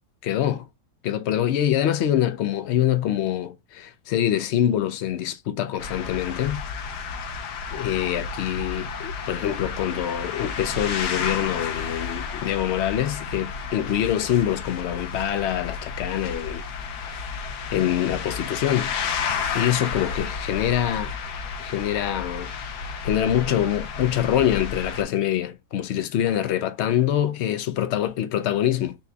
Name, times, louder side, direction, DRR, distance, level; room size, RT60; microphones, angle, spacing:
voice 1, 0.2-0.7 1.0-6.6 7.7-16.6 17.0-17.2 17.7-19.0 19.5-21.1 21.6-22.5 23.0-29.0, left 11 dB, 65° left, 0.7 m, -25 dB
sound 1, 5.8-25.0, left 5 dB, 90° left, 1.4 m, -32 dB
4.2 x 2.3 x 3.9 m
omnidirectional pair, 1.7 m